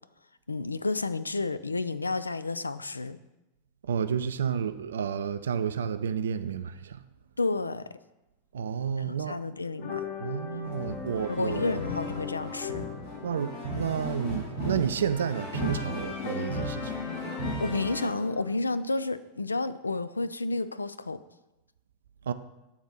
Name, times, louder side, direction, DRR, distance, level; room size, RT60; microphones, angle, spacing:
voice 1, 0.5-3.2 7.4-7.8 9.0-10.0 11.3-12.9 17.6-21.2, left 3 dB, 80° left, 0.3 m, -31 dB
voice 2, 3.9-7.0 8.5-9.4 10.2-11.7 13.2-16.9 22.3-22.4, right 7 dB, 65° right, 0.3 m, -31 dB
sound 1, 9.8-18.4, left 6 dB, 40° left, 1.3 m, -39 dB
sound 2, 10.6-18.1, equal, 60° left, 2.5 m, -36 dB
7.0 x 3.9 x 6.1 m
figure-of-eight pair, 90°, 0 cm